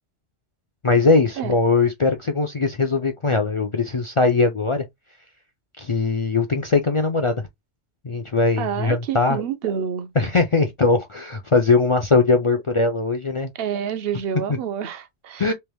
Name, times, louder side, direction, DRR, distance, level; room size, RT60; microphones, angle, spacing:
voice 1, 0.8-4.8 5.8-7.4 8.0-9.4 10.2-13.5 14.5-14.6 15.4-15.5, left 3 dB, 45° left, 0.4 m, -20 dB
voice 2, 8.6-10.1 13.5-15.5, right 8 dB, 60° right, 0.9 m, -28 dB
3.4 x 2.9 x 3.3 m
omnidirectional pair, 1.2 m